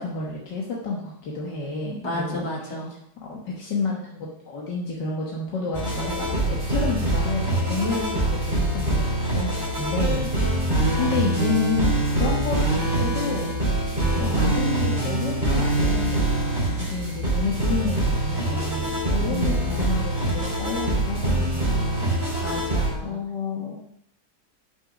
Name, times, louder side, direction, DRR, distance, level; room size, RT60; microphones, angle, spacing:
voice 1, 0.0-2.5 3.2-13.6 14.2-22.1 23.0-23.8, left 4 dB, 80° left, -2 dB, 2.0 m, -30 dB
voice 2, 1.8-2.9 10.7-11.2 19.3-19.7 22.4-23.2, left 1 dB, 55° left, -3 dB, 3.1 m, -33 dB
sound 1, 5.7-22.9, right 2 dB, 30° right, 4.8 m, -24 dB
9.3 x 6.2 x 6.1 m, 0.73 s
omnidirectional pair, 1.9 m